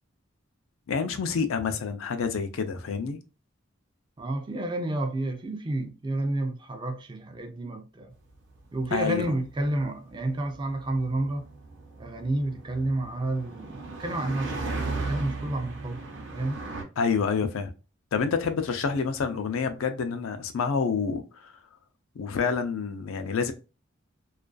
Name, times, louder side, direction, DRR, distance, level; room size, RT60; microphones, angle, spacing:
voice 1, 0.9-3.2 8.9-9.3 17.0-17.7 18.1-21.2 22.2-23.5, left 5 dB, 90° left, 0.4 m, -28 dB
voice 2, 4.2-8.1 8.7-11.5 12.0-16.1 16.3-16.6, right 2 dB, 20° right, 0.3 m, -30 dB
sound 1, 8.3-16.8, right 3 dB, 60° right, 0.6 m, -36 dB
2.4 x 2.2 x 2.3 m
head